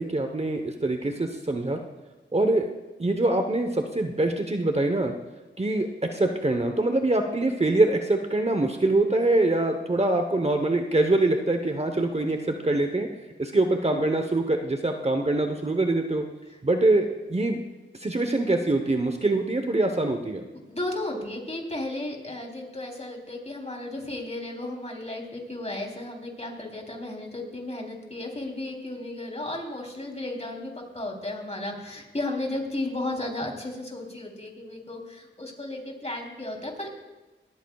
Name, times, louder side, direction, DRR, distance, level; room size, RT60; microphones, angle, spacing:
voice 1, 0.0-1.8 2.3-2.7 3.0-5.1 5.6-13.1 13.4-16.2 16.6-17.6 18.0-20.4, right 2 dB, 30° right, 5 dB, 1.0 m, -24 dB
voice 2, 20.7-36.9, left 2 dB, 30° left, 1 dB, 3.4 m, -34 dB
18.5 x 14.0 x 2.4 m, 1.1 s
cardioid pair, 45°, 20 cm